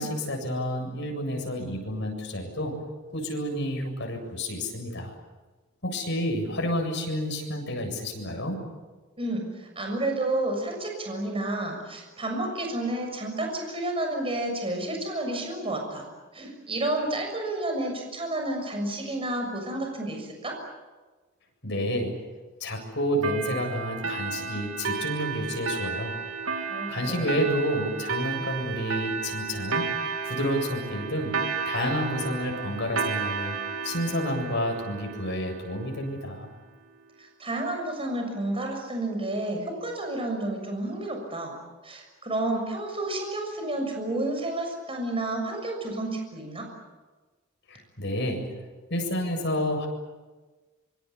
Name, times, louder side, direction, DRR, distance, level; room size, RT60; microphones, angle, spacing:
voice 1, 0.0-5.1 5.8-8.6 21.6-22.2 22.6-26.2 26.9-33.6 33.8-36.5 47.7-48.6 48.9-49.9, equal, 60° left, 3 dB, 7.8 m, -30 dB
voice 2, 9.2-16.1 16.3-20.6 26.7-27.4 37.2-41.6 41.8-46.7, right 2 dB, 30° right, 2 dB, 6.7 m, -30 dB
sound 1, 23.2-36.3, right 5 dB, 80° right, 2.7 m, -33 dB
25.5 x 25.5 x 8.5 m, 1.3 s
head